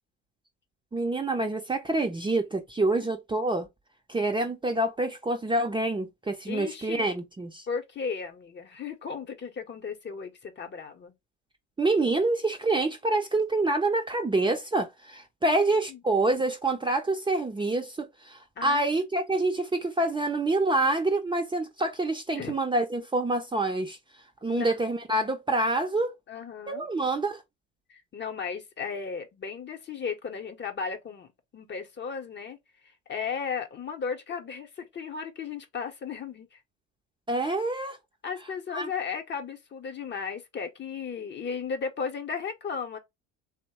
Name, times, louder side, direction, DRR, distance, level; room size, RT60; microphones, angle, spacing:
voice 1, 0.9-3.7 4.1-7.7 11.8-24.0 24.4-26.1 26.7-27.4 37.3-38.0 38.7-38.9, right 2 dB, 15° right, 0.6 m, -27 dB
voice 2, 6.5-7.1 7.7-11.1 15.4-16.0 18.6-18.8 22.3-22.6 24.5-24.7 26.3-26.9 27.9-32.6 32.8-36.6 38.2-43.0, left 6 dB, 35° left, 0.8 m, -35 dB
2.9 x 2.1 x 2.9 m
hypercardioid pair, 70°, 33 cm